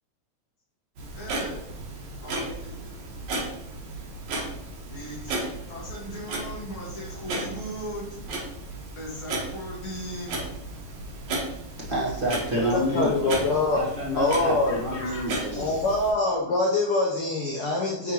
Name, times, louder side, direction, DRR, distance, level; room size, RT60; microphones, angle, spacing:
Clock, 1.0-16.1, right 2 dB, 75° right, 2.8 m, -35 dB
voice 1, 1.2-1.6 2.2-2.9 4.9-5.4 5.7-8.2 8.9-10.4 14.4-15.3, equal, 50° left, -4 dB, 2.3 m, -38 dB
voice 2, 11.9-15.7, equal, 45° right, -7 dB, 0.7 m, -29 dB
voice 3, 12.6-13.8 14.2-14.8 15.5-18.1, left 2 dB, 70° left, -3 dB, 1.3 m, -24 dB
9.9 x 3.6 x 3.0 m, 0.80 s
omnidirectional pair, 3.4 m